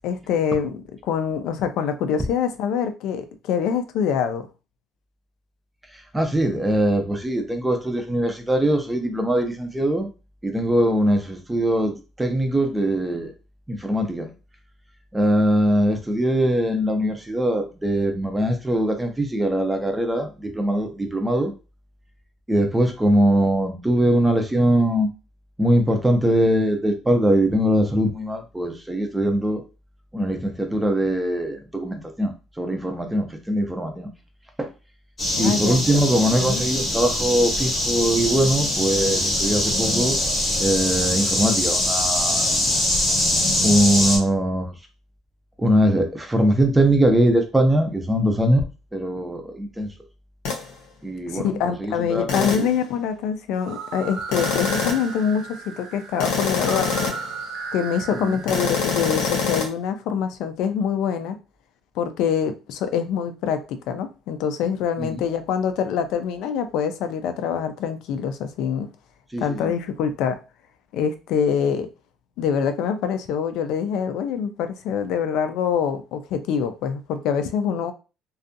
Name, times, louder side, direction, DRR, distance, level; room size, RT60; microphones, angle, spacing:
voice 1, 0.0-0.7 1.0-4.5 35.3-36.1 36.4-36.6 51.3-57.1 57.7-61.4 62.0-68.9 69.4-70.4 70.9-71.9 72.4-77.9, left 7 dB, 70° left, 0.3 m, -25 dB
voice 2, 5.9-10.1 10.4-13.3 13.7-14.3 15.1-21.5 22.5-25.1 25.6-29.6 30.1-34.1 34.6-34.7 35.4-40.2 40.6-42.5 43.6-44.9 45.6-49.9 51.0-52.7 58.1-58.4 65.0-65.3 69.3-69.7, right 1 dB, 5° right, 0.4 m, -22 dB
sound 1, 35.2-44.2, left 1 dB, 20° left, 0.9 m, -23 dB
sound 2, 50.4-50.7 52.3-52.8 54.3-55.1 56.2-57.3 58.5-59.7, left 5 dB, 90° left, 0.7 m, -25 dB
sound 3, 53.5-59.4, right 5 dB, 65° right, 0.5 m, -36 dB
2.6 x 2.3 x 2.5 m
cardioid pair, 170°, 0 cm